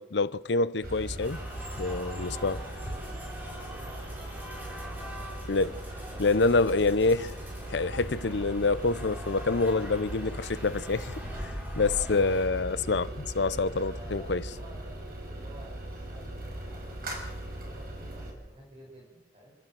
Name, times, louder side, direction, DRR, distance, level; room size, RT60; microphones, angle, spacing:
voice 1, 0.0-1.4 1.8-2.6 5.5-5.8 6.2-7.3 7.7-11.1 11.4-14.5, left 3 dB, 75° left, 0.7 m, -27 dB
sound 1, 0.8-18.3, right 1 dB, 55° right, 5.8 m, -39 dB
sound 2, 1.2-12.5, equal, 10° right, 4.1 m, -45 dB
voice 2, 1.8-4.4 4.7-6.3 12.6-12.7 13.7-17.0 17.6-19.5, right 1 dB, 35° right, 5.3 m, -52 dB
28.5 x 12.5 x 7.7 m
head